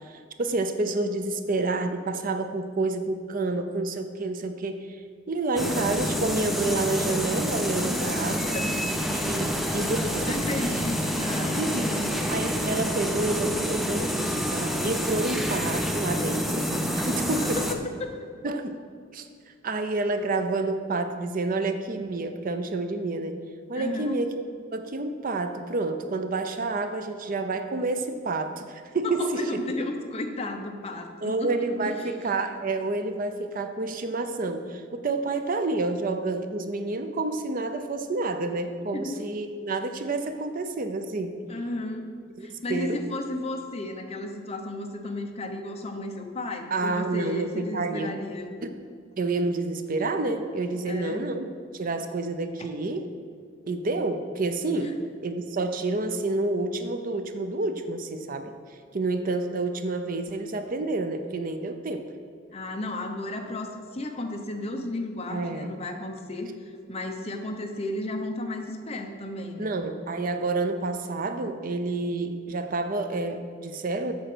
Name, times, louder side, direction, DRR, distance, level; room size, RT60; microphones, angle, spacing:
voice 1, 0.0-5.0 5.3-8.6 9.1-10.8 11.6-11.9 12.3-17.6 18.4-18.8 19.1-19.3 19.6-23.4 23.7-24.4 24.7-29.4 31.2-41.4 42.4-43.0 46.7-48.1 48.6-48.7 49.2-51.4 51.7-53.1 53.7-54.9 55.2-58.5 58.9-62.1 65.3-65.7 69.6-74.1, right 2 dB, 45° right, 8 dB, 0.5 m, -29 dB
sound 1, 5.6-17.7, equal, ahead, 0.6 m, -28 dB
voice 2, 10.3-12.6 17.2-17.5 18.0-18.3 23.7-24.1 29.0-32.2 38.9-39.3 41.5-42.1 42.4-48.5 50.8-51.3 54.8-55.0 62.5-69.7, left 2 dB, 30° left, 4 dB, 0.9 m, -34 dB
8.0 x 6.7 x 6.1 m, 2.1 s
head